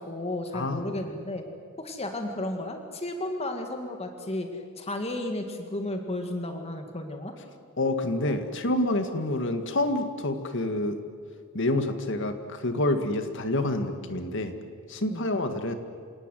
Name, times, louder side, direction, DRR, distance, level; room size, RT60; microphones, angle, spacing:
voice 1, 0.0-1.4 1.8-7.3 15.1-15.3, left 1 dB, 30° left, 5 dB, 2.3 m, -33 dB
voice 2, 7.8-11.0 11.5-14.5 14.9-15.7, left 1 dB, 60° left, 8 dB, 1.9 m, -27 dB
27.5 x 18.0 x 9.3 m, 2.2 s
head